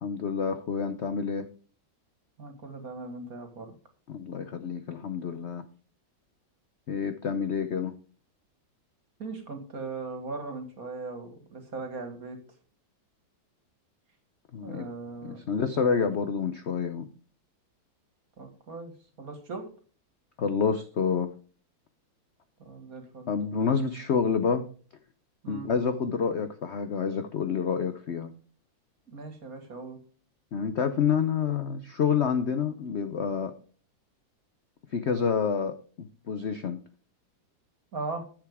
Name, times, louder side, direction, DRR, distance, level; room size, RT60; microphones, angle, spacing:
voice 1, 0.0-1.5 4.1-5.6 6.9-8.0 14.5-14.9 15.2-17.1 20.4-21.3 23.3-24.7 25.5-28.3 30.5-33.5 34.9-36.8, left 6 dB, 65° left, 9 dB, 0.6 m, -28 dB
voice 2, 2.4-3.7 9.2-12.4 14.6-16.1 18.4-18.9 19.2-19.7 22.6-23.3 25.4-25.7 29.1-30.0 37.9-38.3, right 3 dB, 50° right, 6 dB, 2.3 m, -39 dB
10.5 x 7.9 x 3.5 m, 0.40 s
omnidirectional pair, 2.1 m